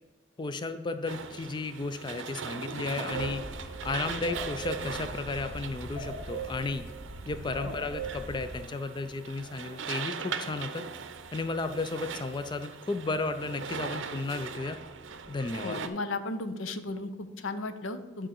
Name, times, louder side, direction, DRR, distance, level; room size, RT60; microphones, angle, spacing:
voice 1, 0.4-6.9 7.3-10.9 11.3-14.8 15.3-15.8, left 3 dB, 25° left, 10 dB, 0.4 m, -34 dB
sound 1, 1.1-15.9, right 6 dB, 70° right, 0.6 m, -40 dB
sound 2, 3.1-8.6, right 2 dB, 15° right, 2.2 m, -40 dB
voice 2, 15.6-18.3, left 2 dB, 90° left, 10 dB, 0.7 m, -35 dB
10.0 x 3.7 x 6.4 m, 1.2 s
head